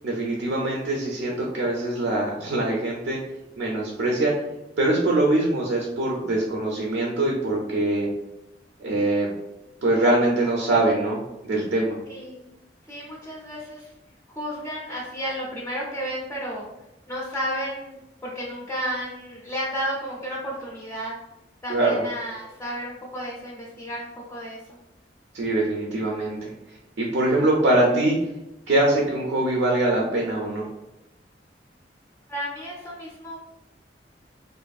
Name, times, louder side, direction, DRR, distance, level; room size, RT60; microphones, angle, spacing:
voice 1, 0.0-3.2 3.6-4.3 4.8-8.1 8.8-9.3 9.8-12.0 21.7-22.0 25.3-26.5 27.0-28.2 28.7-30.6, right 2 dB, 85° right, -2 dB, 0.5 m, -23 dB
voice 2, 12.1-12.4 12.9-13.9 14.3-16.6 17.1-18.0 18.2-21.2 21.6-24.8 32.3-33.5, equal, 15° left, -4 dB, 0.5 m, -32 dB
2.5 x 2.5 x 2.3 m, 0.95 s
head